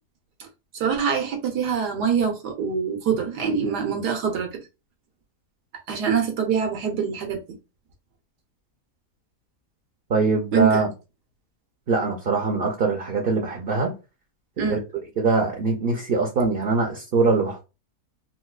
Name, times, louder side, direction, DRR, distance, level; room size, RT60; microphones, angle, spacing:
voice 1, 0.8-4.5 5.9-7.6 10.5-10.8 14.6-14.8, right 7 dB, 85° right, 1.5 m, -24 dB
voice 2, 10.1-10.9 11.9-13.9 14.6-14.8 15.2-17.6, right 4 dB, 55° right, 0.6 m, -22 dB
4.1 x 2.3 x 2.3 m
omnidirectional pair, 1.7 m